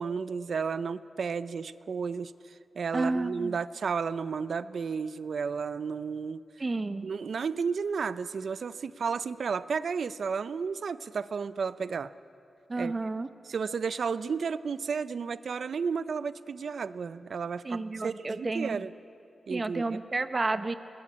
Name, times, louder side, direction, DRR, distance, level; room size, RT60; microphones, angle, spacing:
voice 1, 0.0-6.4 7.0-12.1 12.8-12.9 13.5-18.9 19.5-20.0, right 5 dB, 65° right, 15 dB, 0.6 m, -33 dB
voice 2, 2.9-3.6 6.6-7.1 12.7-13.3 17.6-18.9 19.5-20.7, right 3 dB, 30° right, 11 dB, 0.8 m, -31 dB
25.0 x 20.0 x 8.6 m, 2.7 s
wide cardioid pair, 130°, 0 cm